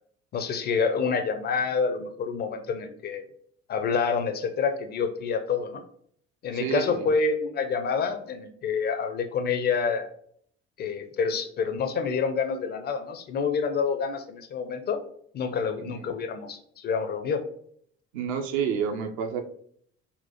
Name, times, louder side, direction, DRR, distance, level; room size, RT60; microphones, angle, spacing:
voice 1, 0.3-3.3 3.7-5.8 6.4-10.1 10.8-15.0 15.3-17.4, left 5 dB, 30° left, 7 dB, 0.4 m, -27 dB
voice 2, 6.5-7.1 15.9-16.1 18.1-19.4, right 7 dB, 60° right, 5 dB, 0.5 m, -29 dB
4.1 x 2.1 x 2.8 m, 0.63 s
figure-of-eight pair, 50°, 32 cm